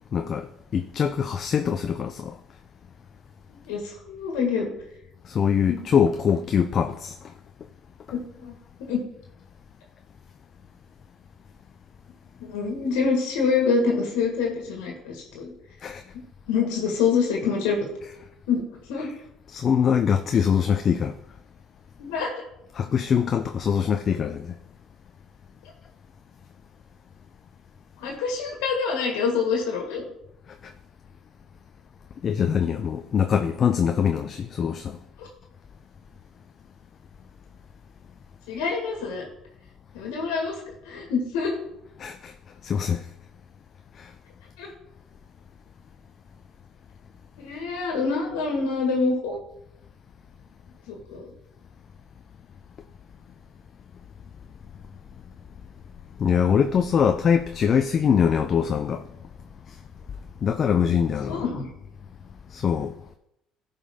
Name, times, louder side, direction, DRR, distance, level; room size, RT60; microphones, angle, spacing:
voice 1, 0.1-2.4 5.3-7.2 15.8-16.0 19.5-21.2 22.7-24.5 32.2-35.0 42.0-42.3 42.6-43.0 44.0-44.1 56.2-59.0 60.4-61.4 62.5-62.9, left 7 dB, 50° left, 0.5 m, -23 dB
voice 2, 3.7-4.7 5.7-5.8 8.1-8.5 8.8-9.0 12.4-15.5 16.5-17.9 18.5-19.1 22.0-22.3 28.0-30.1 35.2-35.3 38.5-39.2 39.9-40.6 40.9-41.5 44.6-44.7 47.4-49.4 50.9-51.3 61.3-61.7, left 5 dB, 90° left, 1.8 m, -26 dB
14.5 x 5.3 x 3.7 m
supercardioid pair, 80°, 0 cm